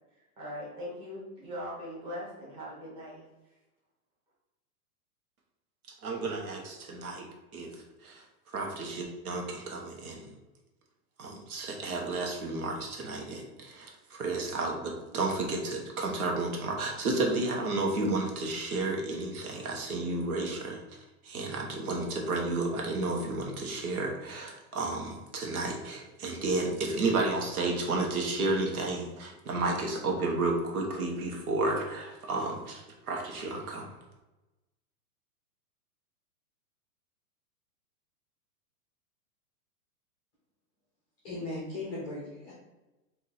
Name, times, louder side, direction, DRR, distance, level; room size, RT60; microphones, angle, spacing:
voice 1, 0.4-3.2, equal, 10° right, -8 dB, 1.2 m, -40 dB
voice 2, 6.0-7.3 7.5-7.7 8.0-8.2 8.5-10.3 11.2-20.8 21.2-33.9, right 2 dB, 70° right, 1 dB, 1.3 m, -32 dB
voice 3, 41.2-42.5, left 2 dB, 10° left, -6 dB, 0.6 m, -37 dB
4.7 x 2.7 x 4.0 m, 1.0 s
supercardioid pair, 175°, 46 cm